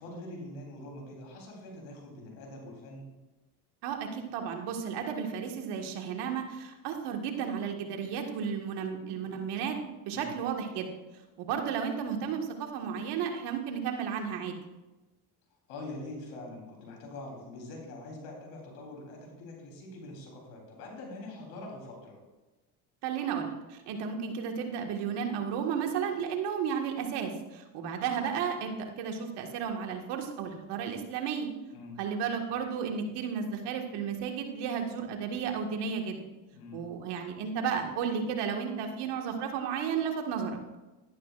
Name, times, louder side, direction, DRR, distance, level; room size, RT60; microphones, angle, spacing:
voice 1, 0.0-3.1 10.1-10.4 15.7-22.2 31.7-32.0 36.5-36.9, left 2 dB, 90° left, 0 dB, 3.6 m, -44 dB
voice 2, 3.8-10.9 11.4-14.5 23.0-31.5 32.0-36.2 36.7-40.5, right 7 dB, 75° right, 3 dB, 1.8 m, -33 dB
12.0 x 11.0 x 2.5 m, 1.1 s
supercardioid pair, 85°, 41 cm